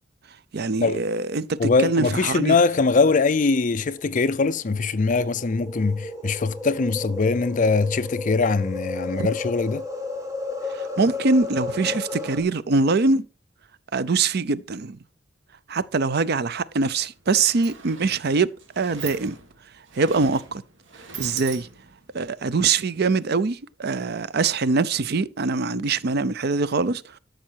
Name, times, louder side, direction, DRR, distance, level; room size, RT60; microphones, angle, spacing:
voice 1, 0.5-2.6 9.2-9.3 11.0-13.3 13.9-15.0 15.7-18.5 18.8-19.4 20.0-20.6 21.2-21.7 22.1-27.2, right 4 dB, 60° right, 0.6 m, -23 dB
voice 2, 1.6-9.8, left 4 dB, 45° left, 0.5 m, -22 dB
sound 1, 3.3-12.4, left 3 dB, 20° right, 2.1 m, -33 dB
Sliding door, 17.2-22.1, right 6 dB, 85° right, 2.1 m, -41 dB
13.0 x 6.3 x 4.6 m
head